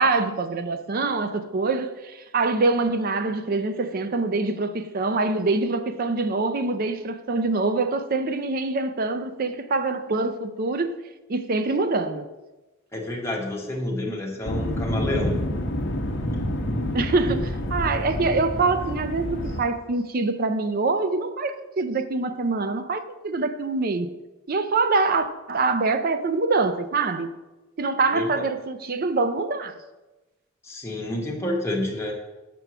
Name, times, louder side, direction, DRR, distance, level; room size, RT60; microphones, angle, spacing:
voice 1, 0.0-11.0 11.3-12.3 16.9-24.1 24.5-27.3 27.8-29.8, right 3 dB, 45° right, 0.5 m, -25 dB
voice 2, 12.9-15.4 28.1-28.3 30.6-32.2, left 1 dB, 10° left, 1.2 m, -29 dB
sound 1, 14.4-19.6, left 1 dB, 60° left, 0.8 m, -28 dB
6.8 x 4.6 x 6.0 m
head